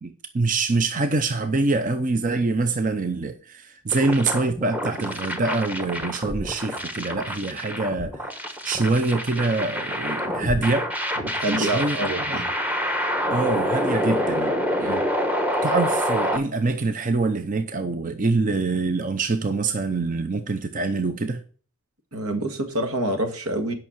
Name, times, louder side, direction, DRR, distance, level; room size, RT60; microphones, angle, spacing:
voice 1, 0.0-10.9 11.5-12.0 12.3-12.4 13.3-14.5 14.8-15.0 15.6-21.4, right 3 dB, 35° right, 0.6 m, -25 dB
sound 1, 3.9-16.4, equal, 5° right, 1.2 m, -27 dB
voice 2, 11.2-12.5 14.9-15.0 22.1-23.7, right 1 dB, 80° right, 1.9 m, -27 dB
9.0 x 5.8 x 7.2 m
head